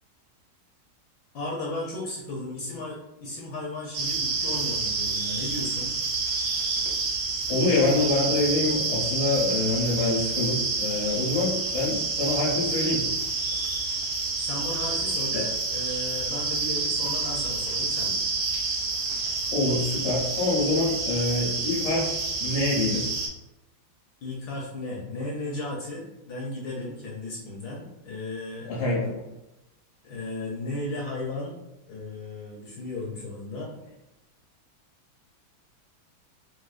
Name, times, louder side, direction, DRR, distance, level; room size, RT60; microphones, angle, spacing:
voice 1, 1.3-5.9 14.4-18.3 24.2-28.7 30.0-31.6 31.9-33.7, left 2 dB, 70° left, -3 dB, 1.0 m, -35 dB
sound 1, 3.9-23.3, right 3 dB, 70° right, 1.3 m, -28 dB
voice 2, 7.5-13.0 15.3-15.4 19.5-23.0 28.7-29.2, left 2 dB, 90° left, -5 dB, 1.8 m, -26 dB
4.5 x 2.1 x 2.4 m, 0.93 s
omnidirectional pair, 2.3 m